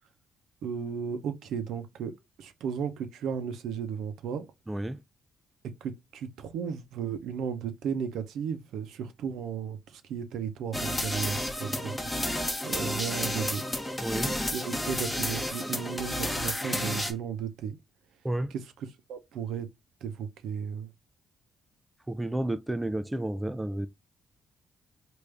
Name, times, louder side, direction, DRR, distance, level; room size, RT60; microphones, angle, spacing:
voice 1, 0.6-4.5 5.6-12.1 12.6-13.6 14.1-17.8 18.5-19.7 20.0-20.9, right 7 dB, 80° right, 0.6 m, -35 dB
voice 2, 4.7-5.0 14.0-14.3 18.2-18.5 22.1-23.9, right 1 dB, 10° right, 0.3 m, -31 dB
sound 1, 10.7-17.1, left 1 dB, 10° left, 0.8 m, -31 dB
3.5 x 2.5 x 3.2 m
cardioid pair, 90°, 0 cm